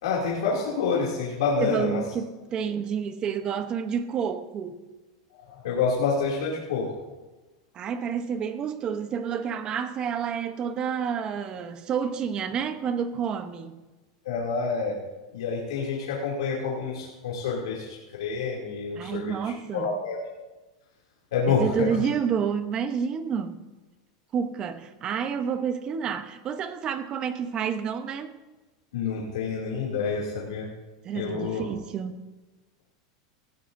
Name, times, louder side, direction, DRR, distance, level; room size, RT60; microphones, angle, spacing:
voice 1, 0.0-2.0 2.6-2.7 5.3-6.9 14.2-14.9 15.3-20.2 21.3-21.9 28.9-30.7 31.1-31.6, left 5 dB, 90° left, 2.7 m, -28 dB
voice 2, 1.6-4.9 7.7-13.8 19.0-19.9 21.5-23.6 24.3-28.3 31.0-32.3, right 7 dB, 30° right, 0.9 m, -29 dB
18.5 x 15.0 x 2.7 m
supercardioid pair, 150°, 3 cm